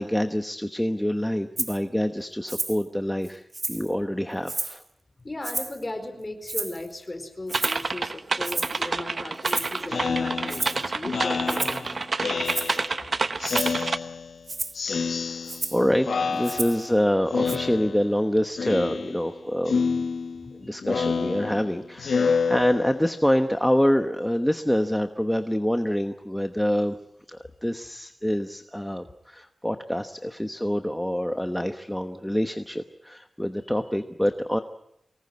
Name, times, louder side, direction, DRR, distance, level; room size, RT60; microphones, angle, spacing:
voice 1, 0.0-4.8 9.4-9.5 10.5-10.6 14.8-19.8 20.6-27.0 27.3-34.6, equal, 5° left, 7 dB, 1.1 m, -26 dB
Rattle (instrument), 1.6-1.8 2.5-2.8 3.2-3.9 4.4-4.8 5.4-5.8 6.5-6.9 7.5-7.9 8.4-8.8 9.4-9.8 10.5-10.8 11.5-11.9 12.4-12.8 13.4-13.8 14.5-14.8 15.5-15.8 16.4-16.9 17.5-17.6, right 2 dB, 30° right, 1.6 m, -32 dB
voice 2, 5.2-12.0 16.6-16.7 20.2-20.7, left 2 dB, 25° left, 6 dB, 4.6 m, -37 dB
sound 1, 7.5-14.0, right 3 dB, 45° right, 0.9 m, -28 dB
Speech synthesizer, 9.9-13.0 13.4-14.4 14.8-15.8 16.1-17.0 17.3-18.2 18.6-19.4 19.7-23.2, left 5 dB, 80° left, 1.2 m, -28 dB
24.0 x 19.5 x 9.6 m, 0.80 s
wide cardioid pair, 120°, 0 cm